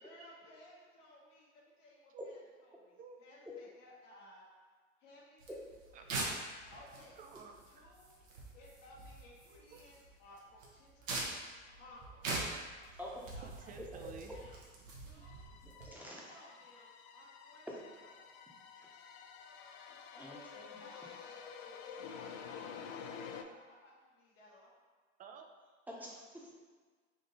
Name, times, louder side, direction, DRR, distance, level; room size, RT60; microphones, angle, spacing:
voice 1, 0.0-4.5 5.0-5.6 5.9-6.2 6.7-7.2 7.7-8.2 8.5-11.4 11.7-12.3 13.3-13.8 14.3-14.6 15.0-15.5 16.0-17.7 18.0-18.3 20.1-24.8, left 1 dB, 75° left, -5 dB, 1.2 m, -59 dB
sound 1, 5.4-15.9, right 2 dB, 80° right, 1.0 m, -44 dB
voice 2, 5.9-6.2 7.2-7.9 9.7-9.8 13.4-14.4 15.1-15.2 25.2-25.5, right 5 dB, 25° right, 4 dB, 0.4 m, -52 dB
voice 3, 13.0-13.3 15.8-16.3 17.7-17.8 18.8-18.9 20.1-20.8 25.9-26.5, equal, 5° right, -4 dB, 0.9 m, -48 dB
sound 2, 15.2-23.4, left 7 dB, 60° left, 0.5 m, -50 dB
3.7 x 2.7 x 3.9 m, 1.5 s
hypercardioid pair, 90°, 38 cm